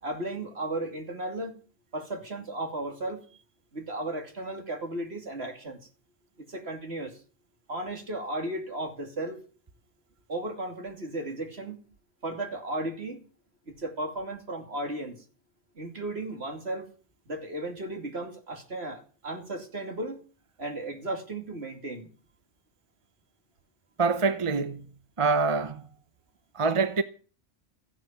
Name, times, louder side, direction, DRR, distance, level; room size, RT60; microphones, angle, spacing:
voice 1, 0.0-1.5 1.9-3.4 3.7-5.8 6.4-7.2 7.7-9.4 10.3-11.9 12.2-13.2 13.7-15.2 15.8-16.9 17.3-20.2 20.6-22.1, right 1 dB, 70° right, 3.0 m, -35 dB
voice 2, 24.0-24.9 25.2-25.9 26.5-27.0, right 4 dB, 30° right, 0.9 m, -25 dB
15.0 x 10.0 x 7.4 m
omnidirectional pair, 1.1 m